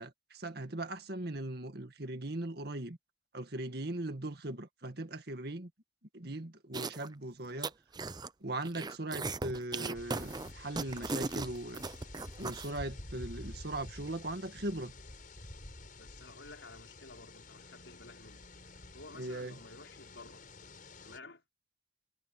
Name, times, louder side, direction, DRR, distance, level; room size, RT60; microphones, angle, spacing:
voice 1, 0.0-3.0 3.3-5.7 6.1-7.7 8.4-11.8 12.4-14.9 19.2-19.6, right 1 dB, 60° right, 2.0 m, -39 dB
sound 1, 6.7-7.1 7.4-8.3 8.6-12.7, right 3 dB, 25° right, 0.6 m, -37 dB
sound 2, 9.9-21.2, left 2 dB, 50° left, 5.7 m, -50 dB
voice 2, 16.0-18.4 18.9-20.4 21.0-21.4, left 3 dB, 85° left, 5.0 m, -52 dB
head